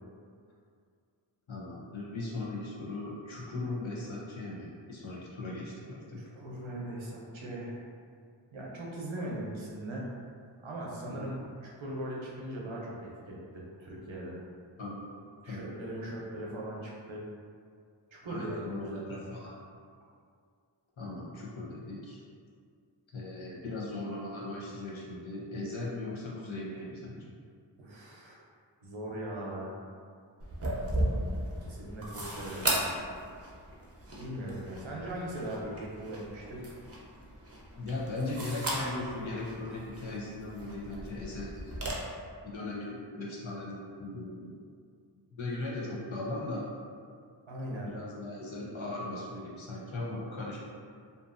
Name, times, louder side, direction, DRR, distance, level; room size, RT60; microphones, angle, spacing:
voice 1, 1.5-6.2 11.0-11.3 14.8-15.0 15.5-15.7 18.3-19.5 21.0-22.2 23.1-27.3 37.7-42.0 42.5-44.5 45.4-46.7 47.6-50.6, left 2 dB, 75° left, -5 dB, 0.7 m, -38 dB
voice 2, 6.4-7.8 8.5-10.2 10.6-14.4 15.4-17.2 18.1-19.2 27.8-28.4 28.8-29.7 31.6-32.7 34.2-36.6 47.5-47.9, right 1 dB, 75° right, -4 dB, 0.7 m, -39 dB
sound 1, 30.4-41.9, right 1 dB, 30° right, 0.5 m, -37 dB
2.6 x 2.5 x 2.5 m, 2.2 s
wide cardioid pair, 50°, 47 cm